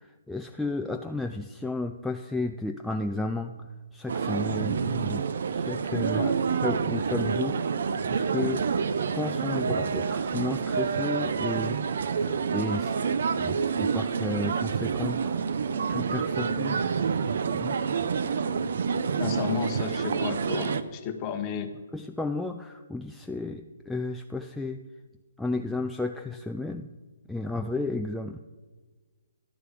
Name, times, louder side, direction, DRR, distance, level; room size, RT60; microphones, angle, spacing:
voice 1, 0.0-5.3 5.5-6.2 6.6-7.6 8.1-11.8 12.5-15.5 15.9-16.8 17.5-17.7 21.9-24.8 25.4-26.9 27.3-28.4, left 2 dB, ahead, 3 dB, 0.3 m, -33 dB
sound 1, 4.1-20.8, right 6 dB, 60° right, 0.6 m, -28 dB
voice 2, 19.2-21.9, left 7 dB, 25° left, 7 dB, 1.0 m, -33 dB
11.5 x 4.7 x 8.4 m, 1.4 s
hypercardioid pair, 150°, 0 cm